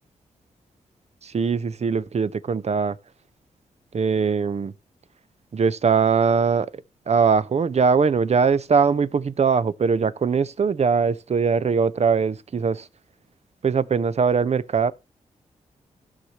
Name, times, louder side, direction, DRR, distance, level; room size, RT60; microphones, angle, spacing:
voice 1, 1.2-3.0 3.9-4.7 5.5-6.7 7.1-12.9 13.6-14.9, right 5 dB, 45° right, 0.7 m, -21 dB
16.5 x 5.8 x 3.0 m
supercardioid pair, 40°, 15 cm